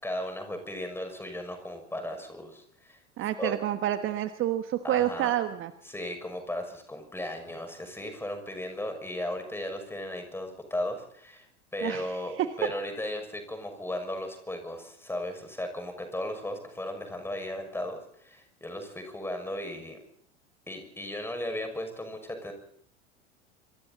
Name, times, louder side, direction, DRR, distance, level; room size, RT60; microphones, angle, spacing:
voice 1, 0.0-3.5 4.8-5.3 5.8-20.0 20.7-22.5, left 1 dB, 5° left, 6 dB, 6.3 m, -36 dB
voice 2, 3.2-5.7 11.8-12.1, right 12 dB, 35° right, 8 dB, 1.5 m, -28 dB
28.0 x 23.5 x 4.2 m, 0.68 s
figure-of-eight pair, 80°, 35 cm